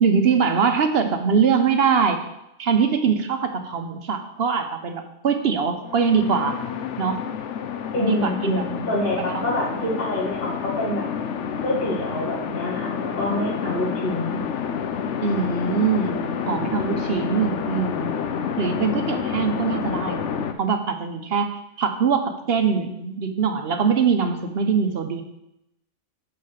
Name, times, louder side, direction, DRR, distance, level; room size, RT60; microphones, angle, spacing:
voice 1, 0.0-2.2 2.6-6.6 7.0-7.2 8.0-8.7 9.3-9.4 15.2-18.2 18.6-20.3 20.6-25.2, right 6 dB, 60° right, 7 dB, 1.0 m, -22 dB
sound 1, 5.8-20.5, left 7 dB, 75° left, 1.0 m, -29 dB
voice 2, 7.9-11.1 11.6-14.4, left 1 dB, 50° left, -6 dB, 2.4 m, -26 dB
7.4 x 4.7 x 6.5 m, 0.85 s
omnidirectional pair, 1.2 m